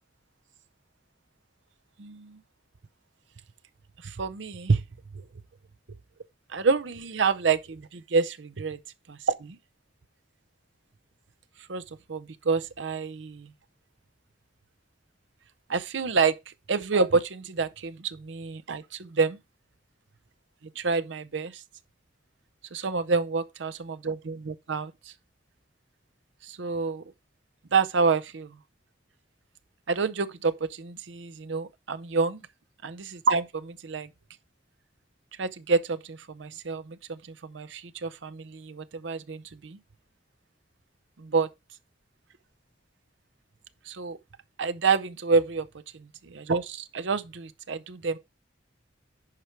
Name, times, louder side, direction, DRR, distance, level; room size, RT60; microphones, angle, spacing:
voice 1, 2.0-2.4 4.0-4.9 5.1-5.2 6.5-8.8 9.3-9.6 11.7-11.8 12.1-13.4 15.7-19.4 20.8-21.6 22.7-25.1 26.4-27.0 27.7-28.6 29.9-32.4 32.8-34.1 35.4-39.8 41.2-41.5 43.9-44.2 44.6-45.7 46.3-48.2, right 4 dB, 75° right, 0.7 m, -28 dB
10.5 x 4.6 x 4.5 m
head